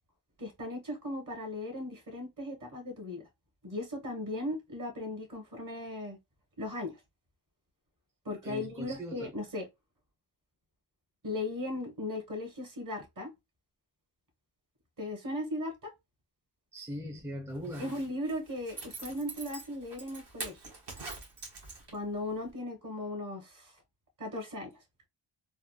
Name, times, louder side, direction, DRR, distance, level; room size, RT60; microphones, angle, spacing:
voice 1, 0.4-3.3 3.6-6.2 6.6-6.9 8.2-9.6 11.2-13.3 15.0-15.7 17.8-20.6 21.9-23.7 24.2-24.7, left 1 dB, 45° right, 1.4 m, -37 dB
voice 2, 8.3-9.3 16.7-17.9, equal, 5° right, 0.5 m, -40 dB
Zipper (clothing), 17.6-22.2 22.5-22.6, right 3 dB, 60° right, 1.4 m, -44 dB
3.5 x 2.1 x 2.3 m
cardioid pair, 70°, 47 cm